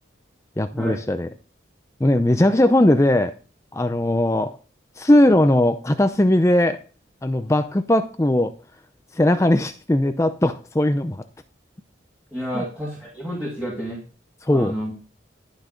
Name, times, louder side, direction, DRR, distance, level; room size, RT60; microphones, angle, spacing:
voice 1, 0.6-1.3 2.0-3.3 3.7-4.5 5.0-6.8 7.2-8.5 9.1-11.2 12.5-12.6 14.4-14.7, left 1 dB, 15° left, 9 dB, 0.5 m, -19 dB
voice 2, 12.3-14.0 14.5-14.9, equal, 5° right, -5 dB, 2.5 m, -30 dB
12.0 x 6.3 x 5.1 m, 0.36 s
head